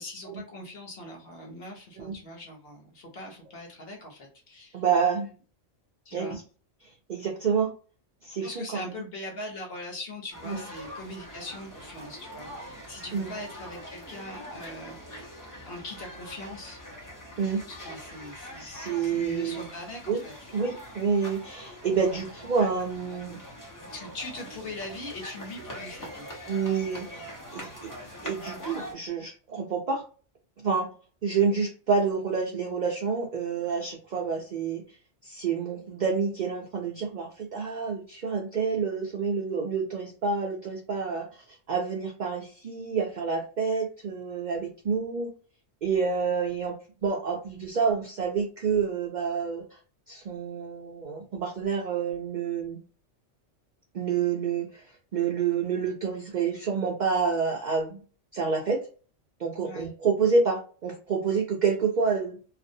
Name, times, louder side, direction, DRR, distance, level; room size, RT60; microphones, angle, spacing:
voice 1, 0.0-4.8 6.0-6.4 8.4-15.2 15.7-16.8 17.7-20.5 22.1-22.2 23.9-26.3 59.6-59.9, left 1 dB, 55° left, 0 dB, 0.9 m, -41 dB
voice 2, 4.7-5.3 6.1-6.4 7.1-7.7 8.2-8.9 10.5-10.6 13.1-13.3 17.4-17.6 18.6-19.6 20.1-20.2 20.5-23.4 26.5-27.9 28.2-30.0 30.6-30.9 31.2-34.8 35.2-41.3 41.7-45.3 45.8-49.8 50.1-52.8 53.9-54.9 55.1-58.0 58.3-58.8 59.4-62.4, right 5 dB, 65° right, 0 dB, 0.4 m, -28 dB
sound 1, 10.3-28.9, equal, 25° left, 0.4 m, -43 dB
2.4 x 2.0 x 2.6 m, 0.37 s
omnidirectional pair, 1.3 m